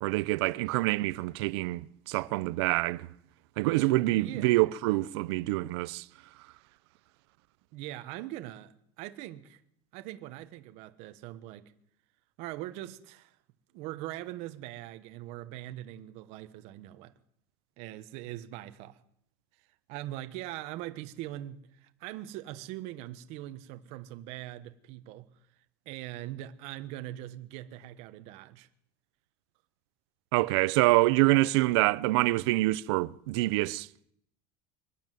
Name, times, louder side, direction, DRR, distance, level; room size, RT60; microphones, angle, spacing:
voice 1, 0.0-3.1 3.6-6.0 30.3-33.9, right 20 dB, 70° right, 0.7 m, -26 dB
voice 2, 4.1-4.5 7.7-9.6 9.9-11.7 12.4-13.4 13.7-17.1 17.8-19.0 19.9-25.3 25.8-28.7, right 14 dB, 50° right, 1.2 m, -41 dB
23.0 x 12.5 x 9.2 m
cardioid pair, 170°, 14 cm